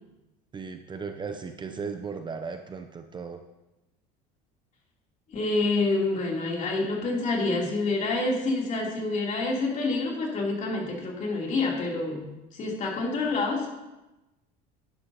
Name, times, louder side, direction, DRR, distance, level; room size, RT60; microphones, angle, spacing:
voice 1, 0.5-3.4, right 5 dB, 25° right, 6 dB, 0.6 m, -36 dB
voice 2, 5.3-13.7, left 3 dB, 40° left, -2 dB, 3.4 m, -27 dB
11.5 x 9.6 x 2.9 m, 1.0 s
supercardioid pair, 110°, 19 cm